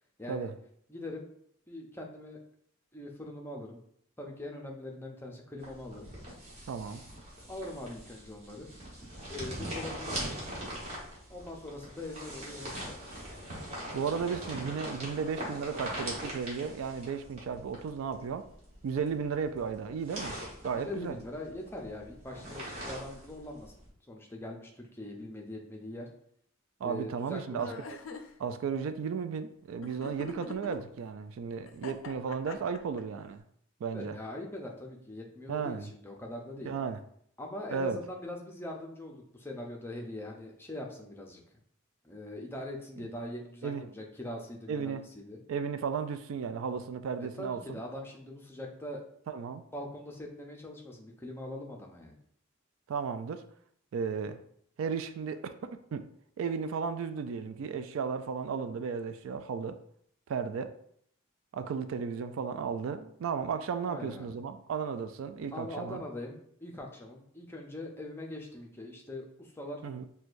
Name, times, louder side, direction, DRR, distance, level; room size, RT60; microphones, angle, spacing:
voice 1, 0.2-0.5 0.9-1.3 1.7-2.4 2.9-3.8 4.2-6.1 7.5-8.7 9.3-10.4 11.3-13.0 20.7-23.7 24.1-26.1 26.8-27.8 33.9-36.7 37.4-41.4 42.0-45.4 47.4-49.0 49.7-52.1 63.8-64.3 65.5-69.8, left 1 dB, 10° left, 0 dB, 0.5 m, -42 dB
sound 1, 5.6-23.9, right 1 dB, 30° right, 1.2 m, -42 dB
voice 2, 6.7-7.0 13.9-18.5 18.8-20.4 20.6-21.2 26.8-27.7 28.4-33.4 33.8-34.2 35.5-35.9 36.7-37.0 37.7-38.0 43.6-43.8 44.7-45.0 45.5-47.8 49.3-49.6 52.9-53.4 53.9-54.4 54.8-56.1 56.4-59.8 60.3-60.7 61.5-66.0 69.8-70.1, right 6 dB, 70° right, 10 dB, 0.3 m, -34 dB
sound 2, 27.6-28.3 29.8-30.8 31.7-33.0, left 4 dB, 70° left, 0.4 m, -42 dB
6.1 x 2.2 x 2.5 m, 0.66 s
head